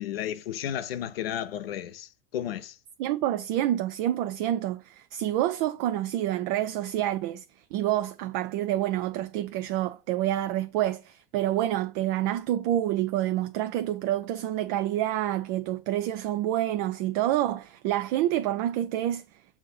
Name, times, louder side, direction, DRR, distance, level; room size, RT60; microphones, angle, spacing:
voice 1, 0.0-2.8, left 10 dB, 75° left, 0.7 m, -33 dB
voice 2, 3.0-7.4 7.7-19.2, right 13 dB, 50° right, 0.5 m, -28 dB
7.1 x 2.7 x 5.4 m
hypercardioid pair, 90°, 30 cm